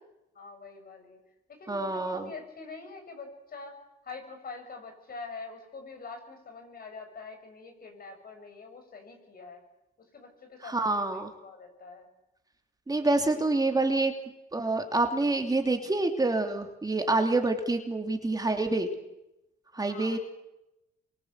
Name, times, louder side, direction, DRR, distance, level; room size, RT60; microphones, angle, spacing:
voice 1, 0.3-1.2 1.5-3.7 4.0-9.6 10.1-12.1 13.1-13.4 14.7-14.9 19.8-20.2, left 4 dB, 50° left, 5 dB, 7.2 m, -45 dB
voice 2, 1.7-2.3 10.7-11.3 12.9-14.1 14.5-18.9 19.7-20.2, right 2 dB, 20° right, 4 dB, 2.9 m, -27 dB
27.5 x 24.0 x 8.2 m, 0.92 s
cardioid pair, 90°, 20 cm